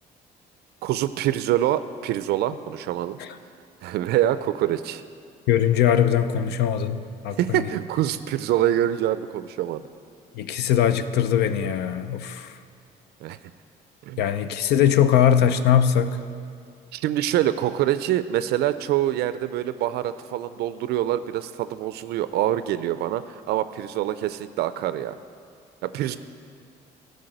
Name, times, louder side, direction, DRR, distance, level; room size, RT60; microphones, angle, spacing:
voice 1, 0.8-3.2 3.8-5.0 7.4-9.9 13.2-13.4 14.1-14.2 16.9-25.2 25.8-26.2, right 12 dB, 75° right, 13 dB, 0.4 m, -25 dB
voice 2, 5.5-7.7 10.3-12.6 14.2-16.2, left 9 dB, 75° left, 12 dB, 0.6 m, -21 dB
12.5 x 5.2 x 7.8 m, 2.3 s
cardioid pair, 110°, 17 cm